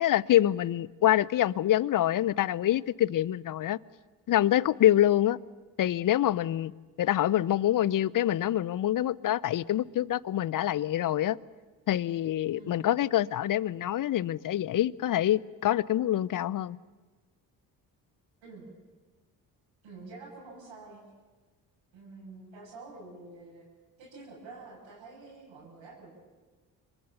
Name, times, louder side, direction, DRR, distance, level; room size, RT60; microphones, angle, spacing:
voice 1, 0.0-3.8 4.3-5.4 5.8-6.7 7.0-11.4 11.9-16.8, left 12 dB, 40° left, 23 dB, 0.7 m, -26 dB
voice 2, 18.4-18.7 19.8-21.0 21.9-23.6 24.0-26.1, right 3 dB, 65° right, -6 dB, 7.5 m, -47 dB
26.0 x 22.0 x 6.9 m, 1.3 s
hypercardioid pair, 45°, 50 cm